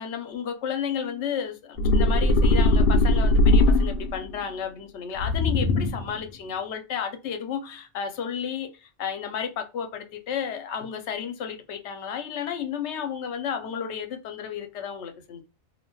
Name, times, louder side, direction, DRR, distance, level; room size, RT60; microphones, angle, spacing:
voice 1, 0.0-15.4, left 7 dB, 80° left, 0.9 m, -32 dB
sound 1, 1.8-4.3 5.2-6.2, left 2 dB, 60° left, 0.6 m, -20 dB
2.6 x 2.1 x 3.0 m
omnidirectional pair, 1.2 m